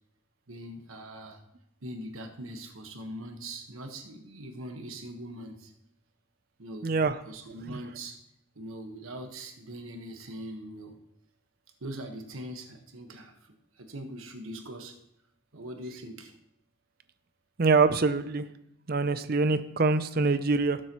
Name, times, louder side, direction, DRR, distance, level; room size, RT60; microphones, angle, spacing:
voice 1, 0.5-1.4 1.8-5.7 6.6-7.0 7.3-8.2 8.5-11.0 11.8-15.0 15.5-16.4, right 1 dB, 90° right, 5 dB, 1.3 m, -42 dB
voice 2, 6.8-7.1 7.7-7.8 17.6-18.4 18.9-20.8, right 4 dB, 45° right, 13 dB, 0.5 m, -24 dB
18.0 x 7.6 x 3.0 m, 0.78 s
head